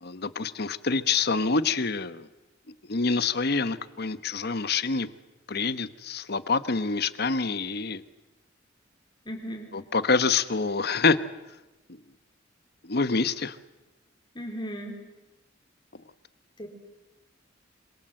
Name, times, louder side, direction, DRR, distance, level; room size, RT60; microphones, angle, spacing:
voice 1, 0.0-2.3 2.9-5.1 5.5-8.0 9.7-11.2 12.8-13.6, left 4 dB, 55° left, 14 dB, 1.1 m, -26 dB
voice 2, 9.2-9.7 14.3-15.0 16.6-16.7, equal, 25° left, 3 dB, 4.3 m, -36 dB
26.5 x 26.0 x 7.8 m, 1.0 s
head